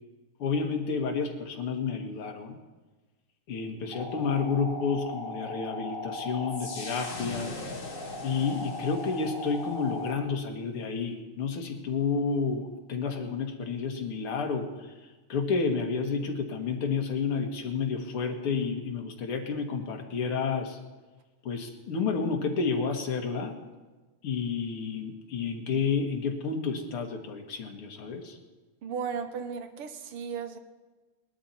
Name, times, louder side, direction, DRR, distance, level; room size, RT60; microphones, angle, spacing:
voice 1, 0.4-2.6 3.5-7.5 8.2-14.9 15.3-20.8 21.4-23.5 24.2-28.4, left 5 dB, 80° left, 3 dB, 2.4 m, -30 dB
sound 1, 3.9-10.2, left 2 dB, 30° left, 1.3 m, -38 dB
voice 2, 28.8-30.6, right 6 dB, 85° right, 8 dB, 2.0 m, -35 dB
19.5 x 12.5 x 4.3 m, 1.2 s
omnidirectional pair, 2.4 m